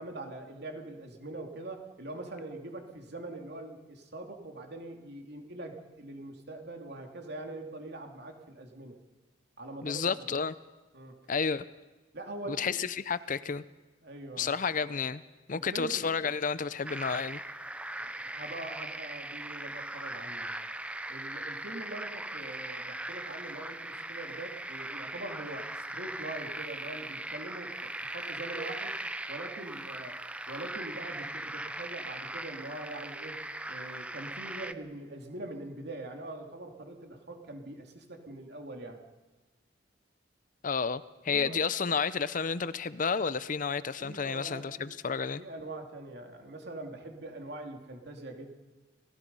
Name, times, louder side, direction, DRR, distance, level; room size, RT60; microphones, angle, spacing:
voice 1, 0.0-9.0 9.6-10.1 10.9-11.2 12.1-12.8 13.4-13.5 14.0-14.5 15.5-16.1 18.0-20.5 21.1-29.0 29.3-30.2 30.5-33.4 33.7-39.0 41.3-41.6 44.0-44.9 45.4-48.5, right 2 dB, 60° right, 3 dB, 2.8 m, -43 dB
voice 2, 9.8-10.5 11.3-11.6 12.5-13.6 14.4-15.2 15.5-17.4 40.6-45.4, left 5 dB, 45° left, 15 dB, 0.6 m, -31 dB
sound 1, 16.8-34.7, right 1 dB, 5° right, 0.7 m, -39 dB
30.0 x 18.0 x 5.5 m, 1.2 s
head